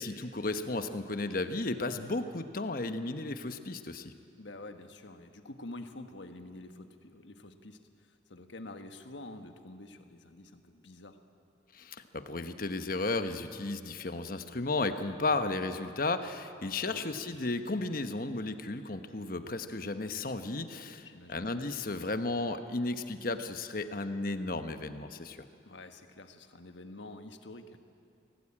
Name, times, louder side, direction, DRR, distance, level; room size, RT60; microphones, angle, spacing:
voice 1, 0.0-4.1 11.7-25.4, left 2 dB, 50° left, 9 dB, 1.1 m, -34 dB
voice 2, 4.4-11.2 16.8-17.1 21.0-21.4 25.6-27.8, left 2 dB, 75° left, 7 dB, 1.5 m, -48 dB
24.5 x 17.5 x 8.7 m, 2.5 s
head